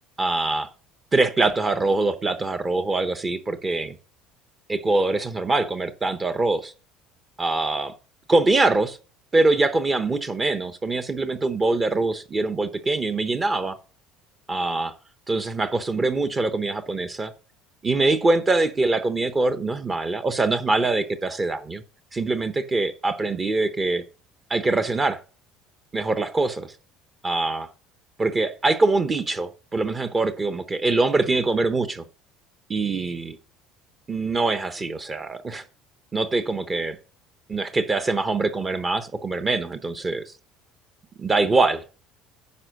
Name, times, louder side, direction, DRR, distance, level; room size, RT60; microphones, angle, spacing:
voice 1, 0.2-0.7 1.1-3.9 4.7-6.7 7.4-7.9 8.3-9.0 9.3-13.8 14.5-14.9 15.3-17.3 17.8-21.8 22.1-24.0 24.5-25.2 25.9-26.7 27.2-27.7 28.2-32.0 32.7-33.4 34.1-35.6 36.1-37.0 37.5-40.3 41.2-42.0, right 3 dB, 20° right, 0.9 m, -23 dB
9.7 x 6.0 x 6.5 m
cardioid pair, 140°, 0 cm